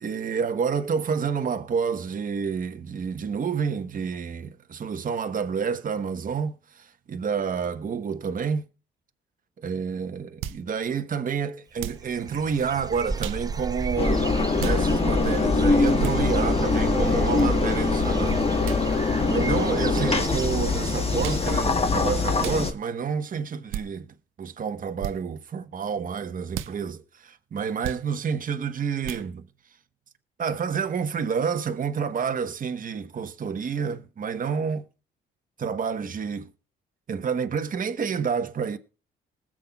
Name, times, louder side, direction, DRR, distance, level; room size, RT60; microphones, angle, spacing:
voice 1, 0.0-8.7 9.6-14.3 14.6-18.4 19.3-29.5 30.4-34.8 35.6-36.5 37.1-38.8, right 6 dB, 45° right, 1.1 m, -29 dB
sound 1, 10.4-10.6 11.8-12.1 13.2-13.4 14.6-14.8 16.0-16.2 17.4-17.5 18.6-18.8 19.9-20.1 21.2-21.5 22.4-22.6 23.7-23.9 25.0-25.2 26.5-26.7 27.8-28.0 29.0-29.3, right 12 dB, 90° right, 0.7 m, -34 dB
sound 2, 12.0-21.6, right 3 dB, 20° right, 0.6 m, -32 dB
Engine, 14.0-22.7, left 4 dB, 30° left, 1.3 m, -23 dB
20.5 x 7.6 x 2.3 m
cardioid pair, 90°, 20 cm